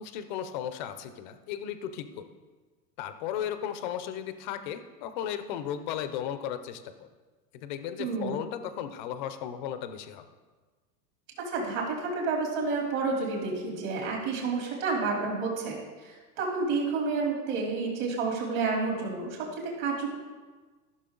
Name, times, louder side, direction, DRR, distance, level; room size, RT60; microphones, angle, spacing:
voice 1, 0.0-2.2 3.0-7.1 7.5-10.2, left 9 dB, 30° left, 10 dB, 0.4 m, -35 dB
voice 2, 8.0-8.4 11.5-19.4 19.8-20.1, right 4 dB, 45° right, -2 dB, 3.2 m, -30 dB
14.0 x 6.4 x 3.7 m, 1.4 s
supercardioid pair, 150°, 49 cm